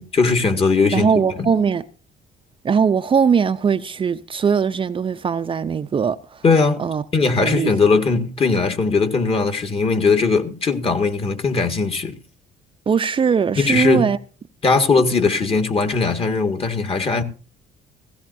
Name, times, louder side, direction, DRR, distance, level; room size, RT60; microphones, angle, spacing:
voice 1, 0.0-1.1 1.4-1.5 6.4-6.8 7.1-12.2 13.6-14.1 14.6-17.2, left 4 dB, 35° left, 1.9 m, -19 dB
voice 2, 0.9-1.8 2.6-6.4 6.8-7.0 7.4-7.7 12.9-14.2, right 6 dB, 30° right, 0.6 m, -20 dB
16.5 x 16.0 x 2.7 m
cardioid pair, 110°, 17 cm